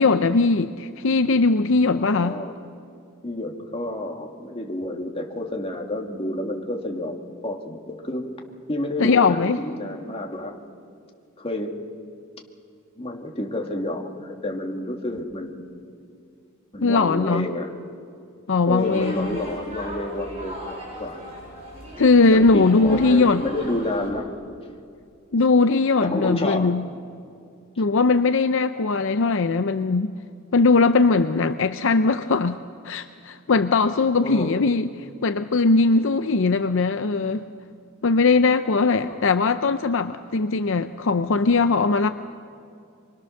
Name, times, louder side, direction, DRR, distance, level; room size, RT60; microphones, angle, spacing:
voice 1, 0.0-2.4 9.0-9.6 16.8-17.5 18.5-19.3 22.0-23.4 25.3-26.9 27.8-30.1 30.5-34.9 35.2-37.4 38.0-42.1, left 3 dB, 65° left, 10 dB, 0.6 m, -20 dB
voice 2, 1.9-2.5 3.2-7.2 7.4-8.3 8.7-10.6 11.4-11.8 13.0-15.8 16.7-17.7 18.7-21.2 22.3-24.2 26.0-26.7 34.2-34.6 39.0-39.2, left 1 dB, 30° left, 2 dB, 2.3 m, -29 dB
sound 1, 18.8-24.1, equal, 30° right, 7.8 m, -38 dB
25.5 x 23.5 x 6.6 m, 2.5 s
head